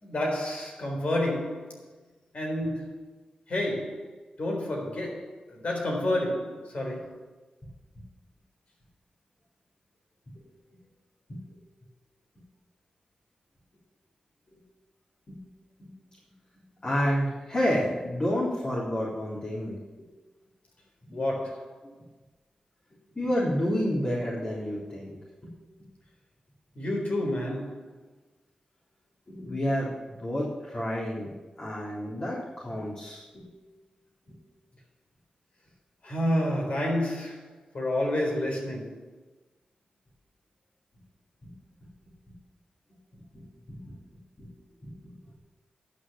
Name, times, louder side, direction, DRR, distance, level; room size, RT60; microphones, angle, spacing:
voice 1, 0.0-1.8 2.3-3.2 3.5-7.3 21.1-21.8 26.8-27.9 36.0-39.1, left 1 dB, 60° left, 3.9 m, -30 dB
voice 2, 16.8-20.1 21.1-21.3 21.8-21.9 23.2-25.2 29.3-29.9 30.2-31.3 31.6-33.5 34.3-34.4 41.4-41.5 43.3-44.0 44.4-44.5 44.8-44.9, equal, 45° left, 3.7 m, -30 dB
11.0 x 6.5 x 7.0 m
cardioid pair, 45°, 3 cm